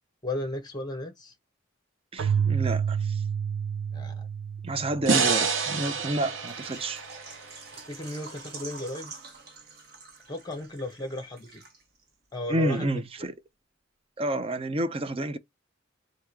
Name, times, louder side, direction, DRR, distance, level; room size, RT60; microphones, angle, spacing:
voice 1, 0.2-1.3 3.9-4.3 7.9-9.1 10.3-11.6 12.3-13.0, left 1 dB, 20° left, 1.3 m, -35 dB
voice 2, 2.1-3.2 4.6-7.0 12.5-13.4 14.2-15.4, right 1 dB, 30° right, 0.5 m, -29 dB
Keyboard (musical), 2.2-5.7, right 7 dB, 90° right, 0.6 m, -29 dB
sound 1, 5.1-8.3, right 5 dB, 70° right, 0.9 m, -28 dB
Water / Liquid, 6.5-12.1 12.3-12.4 12.9-13.0, right 4 dB, 50° right, 1.3 m, -47 dB
3.6 x 2.6 x 4.5 m
head